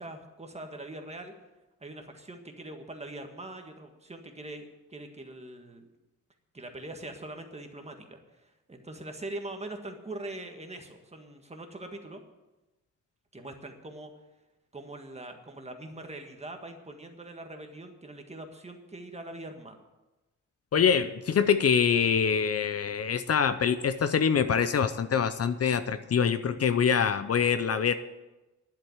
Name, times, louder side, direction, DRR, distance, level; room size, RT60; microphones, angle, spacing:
voice 1, 0.0-1.3 1.8-5.9 6.5-12.2 13.3-14.1 14.7-19.8, right 2 dB, 20° right, 4 dB, 1.6 m, -42 dB
voice 2, 20.7-27.9, left 7 dB, 50° left, 11 dB, 0.7 m, -25 dB
11.0 x 7.7 x 9.4 m, 1.1 s
wide cardioid pair, 135°, 31 cm